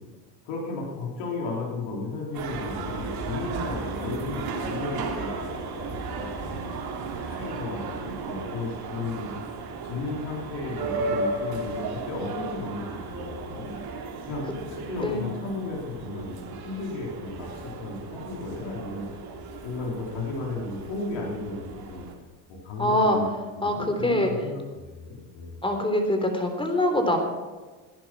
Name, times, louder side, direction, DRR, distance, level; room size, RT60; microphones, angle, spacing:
voice 1, 0.5-6.7 7.2-9.3 9.8-13.8 14.3-19.1 19.6-22.0 22.5-23.3 23.6-25.6, left 3 dB, 70° left, -1 dB, 3.8 m, -34 dB
sound 1, 2.3-22.1, right 3 dB, 50° right, 3.3 m, -35 dB
voice 2, 22.8-23.2 23.6-24.3 25.6-27.2, left 1 dB, 10° left, 5 dB, 3.6 m, -24 dB
16.5 x 10.5 x 6.1 m, 1.3 s
supercardioid pair, 85°, 46 cm